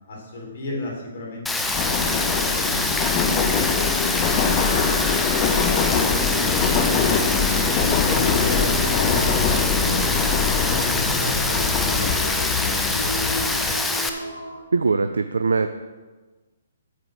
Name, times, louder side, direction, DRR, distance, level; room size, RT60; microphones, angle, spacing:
voice 1, 0.1-3.7 4.1-7.7 8.1-13.8, left 2 dB, 55° left, -1 dB, 3.5 m, -34 dB
Rain, 1.5-14.1, left 2 dB, 5° left, 0.7 m, -25 dB
Subway metro underground, 1.7-13.8, left 5 dB, 30° left, 1.2 m, -23 dB
sound 1, 8.3-14.6, left 2 dB, 85° left, 2.6 m, -35 dB
voice 2, 14.7-15.7, right 4 dB, 75° right, 8 dB, 0.5 m, -21 dB
13.5 x 7.8 x 3.4 m, 1.3 s
figure-of-eight pair, 130°, 0 cm